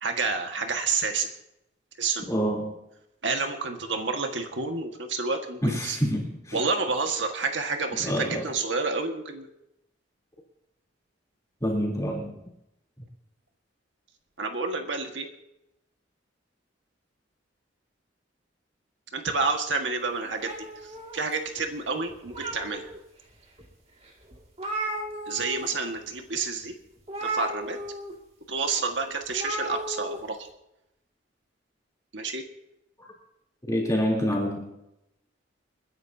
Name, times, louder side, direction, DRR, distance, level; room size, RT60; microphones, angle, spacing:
voice 1, 0.0-1.3 2.0-2.5 3.2-6.0 6.5-9.5 14.4-15.3 19.1-20.5 20.8-22.9 25.3-26.7 27.2-27.8 28.5-30.4 32.1-32.4, right 4 dB, 70° right, 4 dB, 1.7 m, -29 dB
voice 2, 2.3-2.8 5.6-6.6 8.0-8.5 11.6-12.4 33.7-34.7, equal, 15° left, -3 dB, 3.5 m, -27 dB
sound 1, 20.4-21.6 22.1-23.0 23.6-23.7 24.0-24.1 24.3-25.7 26.0-26.2 27.1-28.1 29.3-30.2, right 1 dB, 35° right, 2.3 m, -34 dB
29.0 x 10.5 x 2.8 m, 0.86 s
head